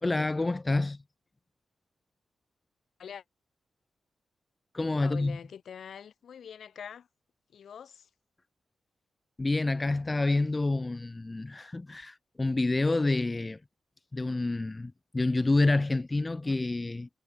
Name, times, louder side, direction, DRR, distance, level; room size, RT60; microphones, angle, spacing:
voice 1, 0.0-1.0 4.7-5.4 9.4-13.6 14.1-17.1, left 2 dB, 30° left, 1.5 m, -28 dB
voice 2, 5.0-7.1 7.5-8.1, left 8 dB, 75° left, 5.4 m, -44 dB
cardioid pair, 55°, 0 cm